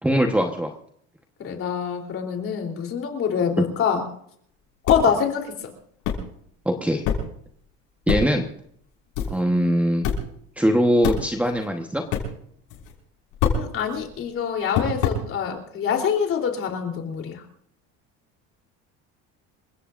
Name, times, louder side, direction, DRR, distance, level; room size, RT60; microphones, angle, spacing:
voice 1, 0.0-0.7 6.6-7.0 8.1-8.5 9.3-10.1 10.6-12.0, equal, 5° right, 3 dB, 1.2 m, -21 dB
voice 2, 1.4-4.0 4.9-5.7 13.5-17.4, left 7 dB, 45° left, 3 dB, 3.5 m, -25 dB
sound 1, 4.9-5.0 5.6-5.7 6.0-6.3 7.0-7.3 8.1-8.3 8.6-8.7 9.2-9.4 10.0-10.3 11.0-11.6 12.1-12.3 12.7-13.0 13.3-14.2 14.7-15.2, left 7 dB, 75° left, 5.7 m, -25 dB
28.0 x 16.0 x 2.6 m, 0.66 s
cardioid pair, 135°, 31 cm